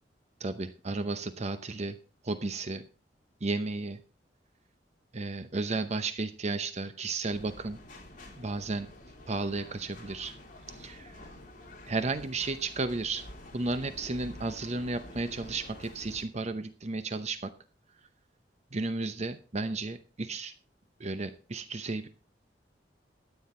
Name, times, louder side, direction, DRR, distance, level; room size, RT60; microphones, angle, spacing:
voice 1, 0.4-2.0 2.2-2.8 3.4-4.0 5.1-7.8 8.4-8.9 9.3-10.3 10.8-11.1 11.9-13.2 13.5-17.5 18.7-20.5 21.0-22.1, right 3 dB, 40° right, 10 dB, 0.8 m, -33 dB
sound 1, 7.3-16.2, left 1 dB, 50° left, 3.0 m, -49 dB
13.0 x 9.4 x 4.3 m, 0.37 s
head